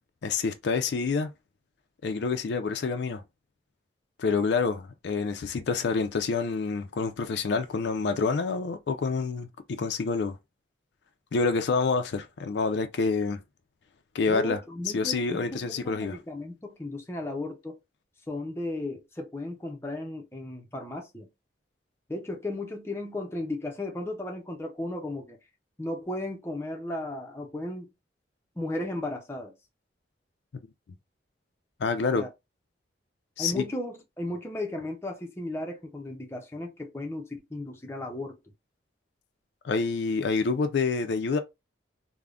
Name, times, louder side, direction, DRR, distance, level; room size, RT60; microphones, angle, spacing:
voice 1, 0.2-1.3 2.0-3.2 4.2-9.5 9.8-10.4 11.3-13.4 14.1-14.6 14.9-16.2 31.8-32.2 33.4-33.6 39.6-41.4, left 4 dB, 65° left, 0.4 m, -27 dB
voice 2, 14.3-17.8 18.3-21.3 22.1-25.4 25.8-27.9 28.6-29.5 32.1-32.3 33.4-38.4, left 2 dB, 15° left, 0.5 m, -35 dB
3.4 x 2.1 x 2.4 m
head